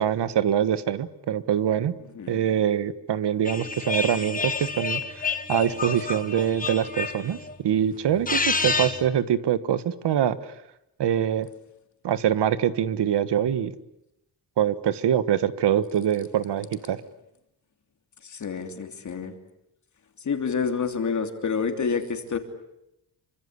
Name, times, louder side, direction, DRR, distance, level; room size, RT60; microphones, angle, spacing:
voice 1, 0.0-1.9 2.3-10.5 11.0-11.5 12.0-13.7 14.6-17.0, right 9 dB, 80° right, 14 dB, 1.5 m, -24 dB
sound 1, 3.4-7.5 8.1-9.1, left 4 dB, 20° left, 1.6 m, -29 dB
voice 2, 18.2-19.4 20.2-22.4, left 5 dB, 45° left, 6 dB, 3.1 m, -28 dB
27.0 x 24.5 x 8.2 m, 0.84 s
wide cardioid pair, 175°, 41 cm